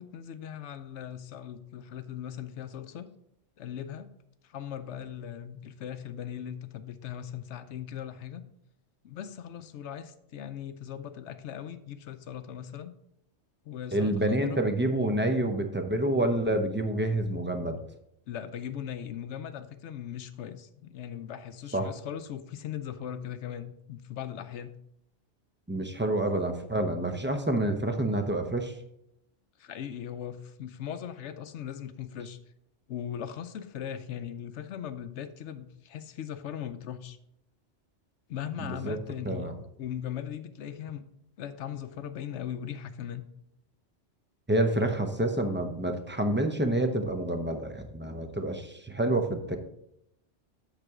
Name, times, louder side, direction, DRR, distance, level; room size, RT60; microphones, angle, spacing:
voice 1, 0.0-3.1 3.6-4.1 4.4-8.4 9.0-12.9 13.6-14.6 18.3-24.7 29.6-32.4 32.9-37.2 38.3-39.5 39.8-41.0 41.4-43.2, left 9 dB, 75° left, 11 dB, 0.9 m, -39 dB
voice 2, 13.9-17.8 21.7-21.9 25.7-28.7 38.6-39.0 39.2-39.5 44.5-49.6, right 1 dB, 10° right, 6 dB, 0.6 m, -28 dB
8.1 x 6.8 x 3.6 m, 0.80 s
omnidirectional pair, 1.2 m